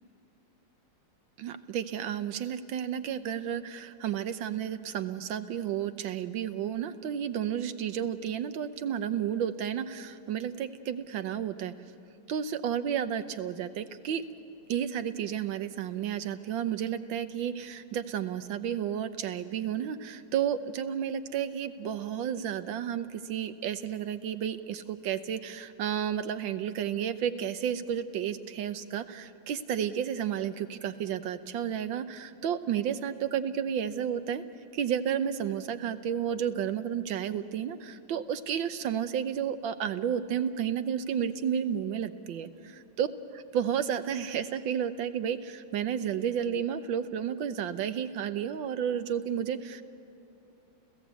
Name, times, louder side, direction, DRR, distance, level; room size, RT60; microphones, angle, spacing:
voice 1, 1.4-11.7 12.3-14.2 14.7-34.4 34.7-43.1 43.5-49.8, right 9 dB, 85° right, 10 dB, 1.6 m, -32 dB
30.0 x 15.5 x 8.3 m, 2.9 s
omnidirectional pair, 2.1 m